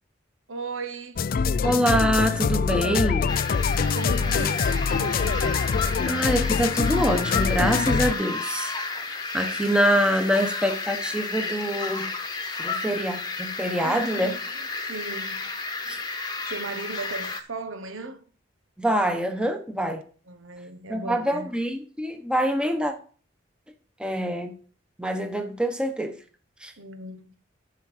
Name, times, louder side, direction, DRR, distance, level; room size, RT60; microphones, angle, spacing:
voice 1, 0.5-1.2 3.6-5.6 13.8-15.4 15.8-16.0 16.5-18.2 20.3-21.5 26.8-27.4, right 3 dB, 85° right, 1.3 m, -37 dB
sound 1, 1.2-8.1, left 5 dB, 45° left, 0.3 m, -24 dB
voice 2, 1.6-3.3 6.1-8.7 9.1-12.1 12.6-14.3 15.9-16.0 18.8-20.0 20.9-22.9 24.0-24.5 25.0-26.2 26.6-26.7, equal, 5° right, 1.1 m, -25 dB
sound 2, 3.3-17.4, left 3 dB, 20° left, 1.1 m, -32 dB
11.5 x 5.7 x 5.0 m
head